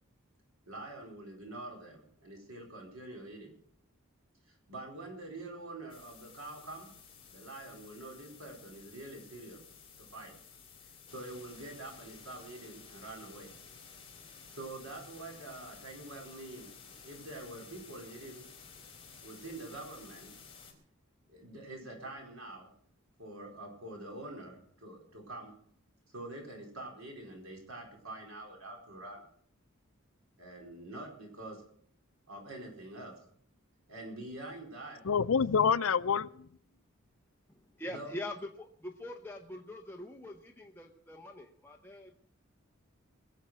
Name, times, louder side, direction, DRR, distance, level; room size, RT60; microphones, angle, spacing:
voice 1, 0.7-3.5 4.5-6.9 7.3-9.6 10.0-10.3 10.8-13.5 14.2-16.7 17.0-18.4 19.2-20.3 21.3-22.7 23.2-25.5 26.1-29.2 30.4-31.6 32.3-33.1 33.9-35.1 37.9-38.1, right 2 dB, 85° right, 0 dB, 4.6 m, -46 dB
sound 1, 5.9-20.7, left 6 dB, 25° left, 3.8 m, -54 dB
voice 2, 35.1-36.3, left 6 dB, 70° left, 14 dB, 0.5 m, -26 dB
voice 3, 37.5-42.2, left 1 dB, 10° left, 1 dB, 0.8 m, -44 dB
22.0 x 7.6 x 6.3 m, 0.63 s
head